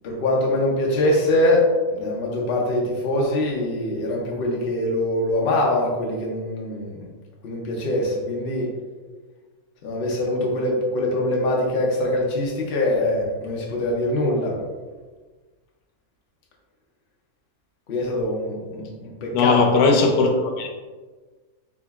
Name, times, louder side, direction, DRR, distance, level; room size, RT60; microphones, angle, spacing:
voice 1, 0.0-7.1 7.4-8.7 9.8-14.6 17.9-19.7, left 1 dB, 50° left, -2 dB, 0.7 m, -23 dB
voice 2, 19.3-20.7, left 4 dB, 90° left, 2 dB, 1.1 m, -18 dB
3.6 x 2.9 x 2.3 m, 1.3 s
omnidirectional pair, 1.5 m